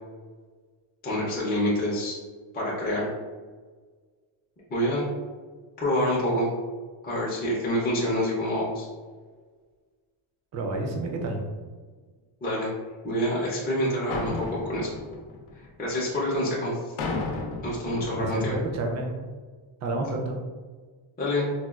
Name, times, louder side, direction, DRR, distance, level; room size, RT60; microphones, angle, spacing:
voice 1, 1.0-2.2 2.5-3.1 4.7-5.0 5.8-6.5 7.0-8.9 12.4-12.7 13.0-14.9 15.8-16.9 17.6-18.6 21.2-21.5, left 1 dB, 20° left, -6 dB, 0.5 m, -27 dB
voice 2, 10.5-11.4 18.2-19.2 19.8-20.4, right 2 dB, 35° right, 1 dB, 0.4 m, -29 dB
sound 1, 14.1-16.1 17.0-18.9, left 3 dB, 80° left, 0.7 m, -34 dB
4.1 x 2.2 x 2.3 m, 1.5 s
cardioid pair, 170°, 50 cm